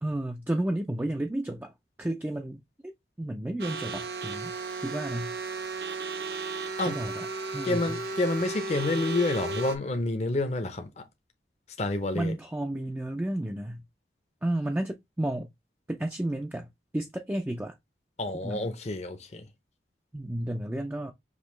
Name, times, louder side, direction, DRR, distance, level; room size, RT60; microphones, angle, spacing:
voice 1, 0.0-4.5 4.8-5.4 6.9-7.3 7.5-8.0 12.1-13.8 14.4-15.5 15.9-17.7 18.4-18.7 20.1-21.1, right 1 dB, 10° right, 0.3 m, -32 dB
sound 1, 3.6-9.8, right 3 dB, 60° right, 0.8 m, -34 dB
voice 2, 7.6-11.0 11.8-12.3 18.2-19.4, left 2 dB, 40° left, 0.6 m, -29 dB
5.2 x 2.9 x 3.1 m
head